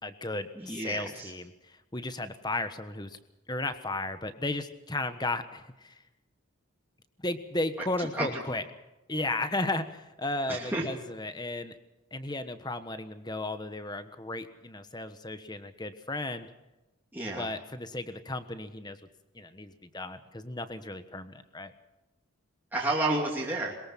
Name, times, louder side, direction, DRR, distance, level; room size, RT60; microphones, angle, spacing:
voice 1, 0.0-3.2 3.5-6.0 7.2-8.6 9.1-11.8 12.1-16.5 17.4-19.0 19.3-21.7, left 2 dB, 20° left, 10 dB, 1.3 m, -34 dB
voice 2, 0.6-1.3 8.2-8.3 10.5-10.8 17.1-17.5 22.7-23.7, right 2 dB, 10° right, -4 dB, 2.6 m, -30 dB
22.0 x 21.0 x 5.9 m, 1.0 s
head